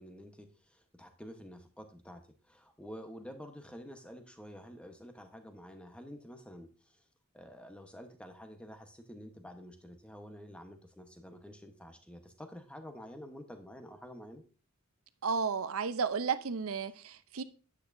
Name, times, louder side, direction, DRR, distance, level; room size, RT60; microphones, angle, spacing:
voice 1, 0.0-7.0 7.3-14.4, equal, 5° left, 1.1 m, -49 dB
voice 2, 15.2-17.4, right 5 dB, 70° right, 0.6 m, -33 dB
9.7 x 8.5 x 2.7 m
head